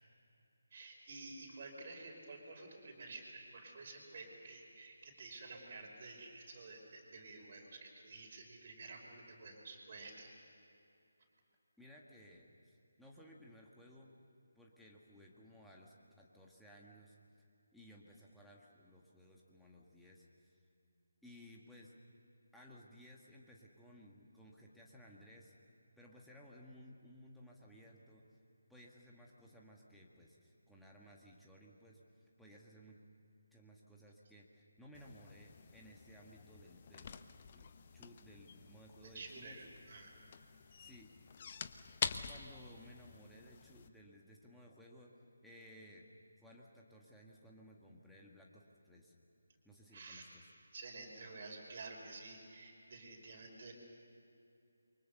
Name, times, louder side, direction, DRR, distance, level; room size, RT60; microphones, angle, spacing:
voice 1, 0.7-10.3 39.0-40.2 49.7-50.2 50.7-53.7, right 3 dB, 40° right, 0 dB, 5.1 m, -51 dB
voice 2, 11.8-14.2 14.6-17.2 17.7-20.6 21.2-21.9 22.5-25.5 26.0-28.2 28.7-32.0 32.4-33.0 33.5-37.1 37.5-39.6 40.8-41.1 42.2-45.1 45.4-46.1 46.4-49.1 49.6-50.4, equal, ahead, -4 dB, 1.9 m, -58 dB
sound 1, 34.9-43.9, left 6 dB, 35° left, 0.9 m, -47 dB
29.0 x 24.0 x 7.0 m, 2.8 s
figure-of-eight pair, 150°, 0 cm